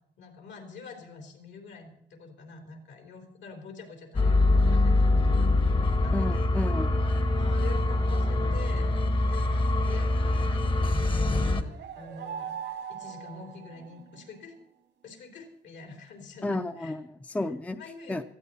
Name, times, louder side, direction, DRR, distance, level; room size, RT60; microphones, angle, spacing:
voice 1, 0.2-6.5 7.3-8.9 9.2-14.6 15.0-17.0 17.7-18.2, left 4 dB, 80° left, 4 dB, 3.5 m, -46 dB
sound 1, 4.1-11.6, left 2 dB, 25° left, 1.0 m, -24 dB
voice 2, 6.1-7.0 16.4-17.8 18.1-18.2, left 2 dB, 5° left, 10 dB, 0.5 m, -32 dB
sound 2, 11.4-14.3, right 8 dB, 75° right, 1.6 m, -40 dB
18.0 x 14.5 x 4.2 m, 0.73 s
cardioid pair, 150°, 19 cm